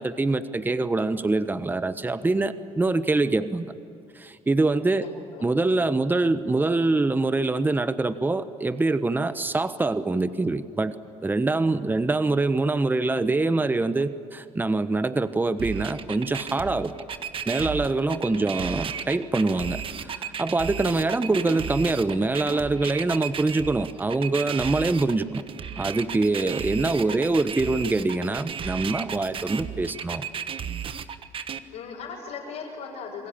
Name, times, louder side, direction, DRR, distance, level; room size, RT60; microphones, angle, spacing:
voice 1, 0.0-3.7 4.1-5.1 5.4-11.0 11.2-16.9 17.5-25.4 25.8-30.2, right 3 dB, 15° right, 12 dB, 1.1 m, -24 dB
voice 2, 5.0-5.7 18.2-18.5 26.9-27.2 31.7-33.3, left 5 dB, 75° left, -4 dB, 6.8 m, -39 dB
sound 1, 15.6-31.6, right 7 dB, 50° right, 1.3 m, -34 dB
28.5 x 21.5 x 8.9 m, 2.4 s
supercardioid pair, 80°, 12 cm